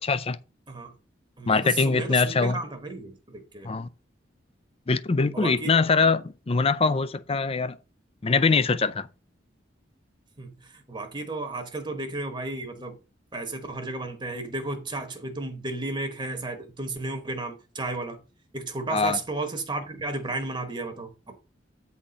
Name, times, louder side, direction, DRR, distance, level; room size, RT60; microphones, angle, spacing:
voice 1, 0.0-0.4 1.5-2.6 3.6-3.9 4.9-7.8 8.2-9.1 18.9-19.2, left 4 dB, 30° left, 0.4 m, -23 dB
voice 2, 1.4-3.7 5.3-5.7 10.4-13.0 13.3-18.2 18.5-21.4, right 2 dB, 25° right, 1.1 m, -33 dB
8.7 x 4.2 x 5.1 m
head